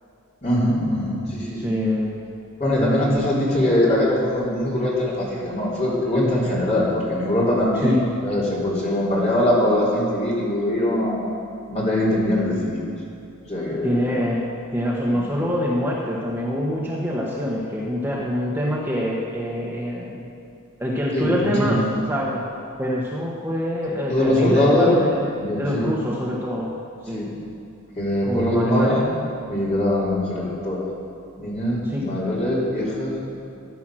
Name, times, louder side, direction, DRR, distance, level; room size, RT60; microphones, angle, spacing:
voice 1, 0.4-1.8 2.6-11.2 11.7-12.8 13.5-14.1 21.1-21.9 24.1-25.0 25.4-25.9 27.1-27.3 28.0-29.1 29.5-30.9 31.4-33.1, left 1 dB, 30° left, -6 dB, 3.7 m, -22 dB
voice 2, 1.6-2.2 7.8-8.0 13.8-20.2 20.8-21.8 22.1-22.4 22.8-25.3 25.6-26.7 27.1-27.3 28.2-29.0 31.8-32.1, equal, 10° right, -5 dB, 1.4 m, -25 dB
14.5 x 10.5 x 6.4 m, 2.7 s
head